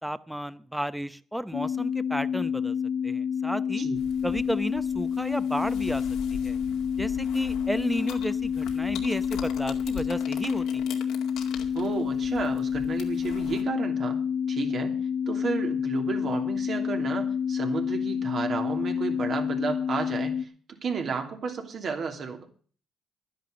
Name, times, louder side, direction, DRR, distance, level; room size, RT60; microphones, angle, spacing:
voice 1, 0.0-2.8 3.0-3.9 4.2-6.0 6.3-6.6 7.0-11.0, equal, 5° right, 15 dB, 0.8 m, -33 dB
sound 1, 1.5-20.4, left 7 dB, 70° left, 0.6 m, -29 dB
sound 2, 3.9-13.6, left 7 dB, 90° left, 2.1 m, -43 dB
voice 2, 11.7-14.2 14.5-15.0 15.3-20.5 20.8-22.5, right 5 dB, 55° right, 4 dB, 2.8 m, -32 dB
11.5 x 10.5 x 6.7 m, 0.43 s
cardioid pair, 90°, 0 cm